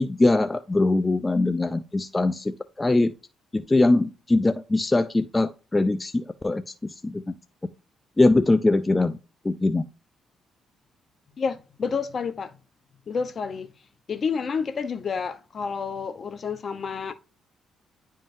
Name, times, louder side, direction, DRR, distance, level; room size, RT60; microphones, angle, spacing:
voice 1, 0.0-3.1 3.5-7.2 8.2-9.2 9.4-9.8, left 2 dB, 20° left, 0.4 m, -22 dB
voice 2, 11.4-12.5 13.1-13.7 14.1-17.1, left 5 dB, 45° left, 0.8 m, -29 dB
10.0 x 3.7 x 2.6 m
cardioid pair, 90°, 0 cm